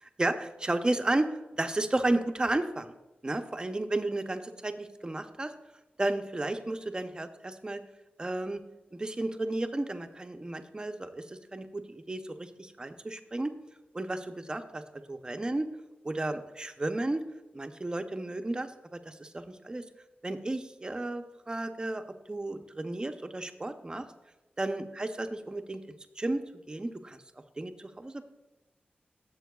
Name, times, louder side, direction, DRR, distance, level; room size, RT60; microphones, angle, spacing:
voice 1, 0.2-1.3 1.6-2.9 3.2-5.5 6.0-7.8 8.2-8.6 8.9-13.5 13.9-14.8 15.1-15.7 16.0-17.2 17.5-19.8 20.2-22.0 22.3-24.0 24.6-25.8 26.2-27.2 27.6-28.2, right 2 dB, 25° right, 7 dB, 0.6 m, -33 dB
14.0 x 7.2 x 2.3 m, 1.0 s
wide cardioid pair, 125°, 4 cm